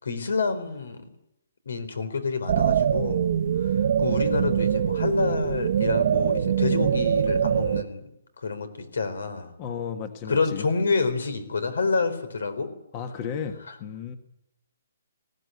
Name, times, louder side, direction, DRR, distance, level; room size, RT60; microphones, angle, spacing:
voice 1, 0.0-1.0 1.7-3.3 3.6-3.7 4.0-8.0 8.4-9.5 10.3-12.7, left 4 dB, 80° left, 11 dB, 4.2 m, -28 dB
sound 1, 2.5-7.8, right 8 dB, 45° right, 1.0 m, -23 dB
voice 2, 9.6-10.6 12.9-14.1, left 7 dB, 25° left, 8 dB, 1.4 m, -34 dB
19.5 x 16.0 x 9.6 m, 0.82 s
hypercardioid pair, 165°, 0 cm